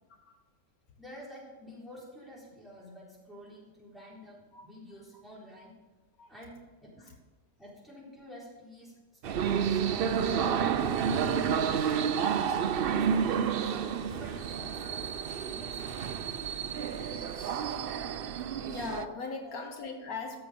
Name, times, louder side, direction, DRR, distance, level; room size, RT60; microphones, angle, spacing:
voice 1, 1.0-5.7 6.3-6.5 6.8-7.1 7.6-11.2 11.8-12.4 12.9-15.0 15.4-16.0 19.4-19.5, equal, ahead, -6 dB, 4.0 m, -49 dB
sound 1, 9.2-19.1, right 7 dB, 75° right, 0.5 m, -30 dB
sound 2, 9.3-19.2, right 4 dB, 50° right, 1.5 m, -55 dB
sound 3, 12.2-17.7, left 8 dB, 90° left, 1.6 m, -54 dB
voice 2, 18.7-20.4, left 4 dB, 75° left, 4 dB, 1.5 m, -39 dB
13.5 x 7.1 x 5.2 m, 1.2 s
omnidirectional pair, 1.6 m